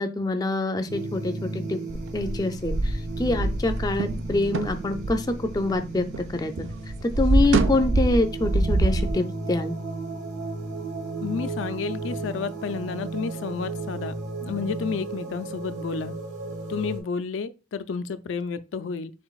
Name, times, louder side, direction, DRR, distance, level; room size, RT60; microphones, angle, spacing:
voice 1, 0.0-1.8 2.1-5.3 5.5-6.1 6.3-6.5 7.2-9.8, left 2 dB, 20° left, 0.4 m, -25 dB
sound 1, 0.9-17.0, right 3 dB, 65° right, 1.3 m, -35 dB
sound 2, 1.9-6.3 6.6-9.1, right 2 dB, 90° right, 0.5 m, -25 dB
voice 2, 11.2-14.1 14.4-16.1 16.7-19.1, left 5 dB, 85° left, 0.4 m, -31 dB
5.9 x 3.8 x 2.4 m
head